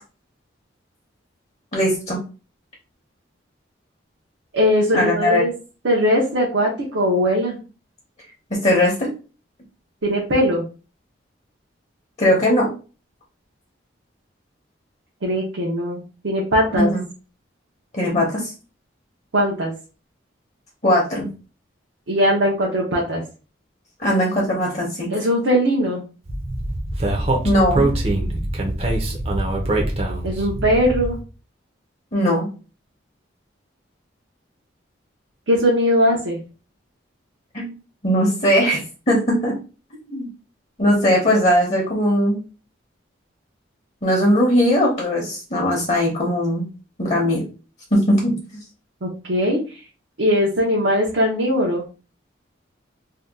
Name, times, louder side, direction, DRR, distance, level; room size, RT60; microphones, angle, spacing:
voice 1, 1.7-2.2 4.9-5.4 8.5-9.1 12.2-12.7 16.7-17.0 17.9-18.5 20.8-21.3 24.0-25.1 27.4-27.9 32.1-32.5 37.5-37.7 38.0-39.6 40.1-40.3 40.8-42.4 44.0-46.7 47.0-47.4 47.9-48.4, equal, 35° left, -2 dB, 0.8 m, -19 dB
voice 2, 4.5-5.5 5.8-7.6 10.0-10.6 15.2-16.9 19.3-19.7 22.1-23.2 25.1-26.0 30.2-31.2 35.5-36.4 49.0-49.8 50.2-51.8, equal, 75° right, -2 dB, 0.7 m, -20 dB
Speech, 26.3-31.2, right 1 dB, 30° right, 0.6 m, -23 dB
2.7 x 2.2 x 3.5 m, 0.34 s
head